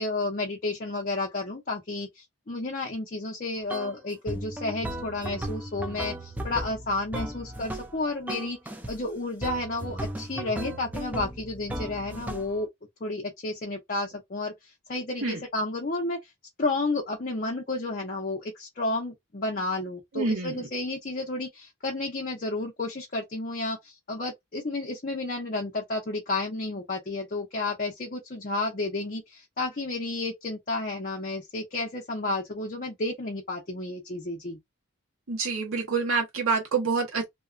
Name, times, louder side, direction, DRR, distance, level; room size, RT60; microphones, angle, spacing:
voice 1, 0.0-8.6 8.9-12.7 13.0-14.5 14.9-16.2 16.6-34.6, left 2 dB, 40° left, 0.6 m, -31 dB
sound 1, 3.7-4.0 4.3-8.0 8.3-9.0 9.4-12.6, right 1 dB, 10° right, 0.4 m, -36 dB
voice 2, 20.1-20.7 35.3-37.3, right 4 dB, 85° right, 1.3 m, -27 dB
2.8 x 2.2 x 2.5 m
head